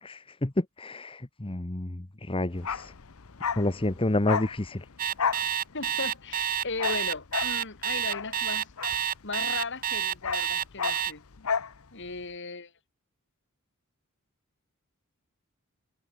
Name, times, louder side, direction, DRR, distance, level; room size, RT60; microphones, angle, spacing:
voice 1, 0.0-2.9 3.6-4.8, left 1 dB, 25° left, 1.1 m, -29 dB
Bark, 2.5-9.6 9.9-11.8 12.0-12.2, left 6 dB, 75° left, 0.9 m, -33 dB
Alarm, 5.0-11.1, right 9 dB, 40° right, 0.9 m, -29 dB
voice 2, 5.7-8.7 9.2-11.2 11.9-12.7, left 3 dB, 55° left, 3.6 m, -36 dB
head